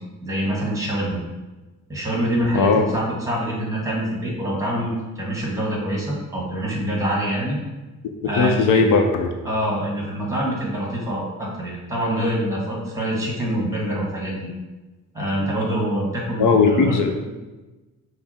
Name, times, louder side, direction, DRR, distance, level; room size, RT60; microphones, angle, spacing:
voice 1, 0.2-1.2 1.9-7.6 8.2-8.8 9.4-14.5 15.1-17.0, right 1 dB, 10° right, -3 dB, 1.5 m, -25 dB
voice 2, 8.4-9.3 16.4-17.1, left 4 dB, 75° left, 4 dB, 0.6 m, -17 dB
5.7 x 2.0 x 4.2 m, 1.2 s
cardioid pair, 105°, 31 cm